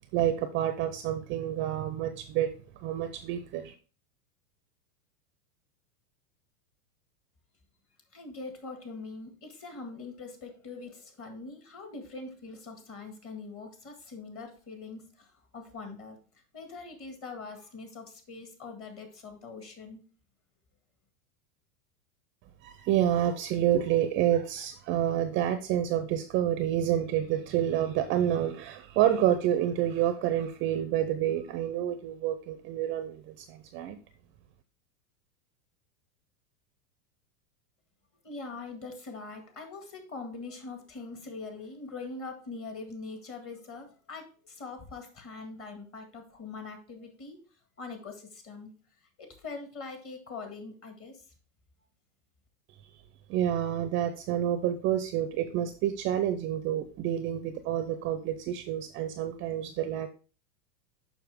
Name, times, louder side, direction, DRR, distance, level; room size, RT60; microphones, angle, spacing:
voice 1, 0.1-2.5 2.8-3.7 22.6-34.0 53.3-60.1, right 11 dB, 30° right, 10 dB, 0.4 m, -28 dB
voice 2, 8.1-16.2 16.5-20.0 38.2-47.4 47.8-48.7 49.2-51.2, left 3 dB, 30° left, 5 dB, 1.8 m, -43 dB
7.0 x 5.6 x 3.4 m, 0.38 s
supercardioid pair, 125°, 44 cm